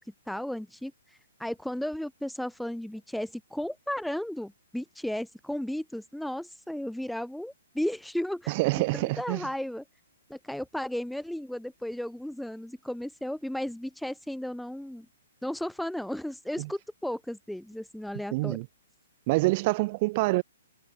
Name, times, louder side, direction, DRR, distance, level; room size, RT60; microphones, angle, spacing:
voice 1, 0.3-0.9 1.4-8.5 8.9-9.8 10.3-15.1 15.4-18.6, left 1 dB, ahead, 4.8 m, -34 dB
voice 2, 8.5-9.4 16.6-16.7 18.3-18.7 19.3-20.4, right 23 dB, 40° right, 7.2 m, -26 dB
figure-of-eight pair, 125°, 0 cm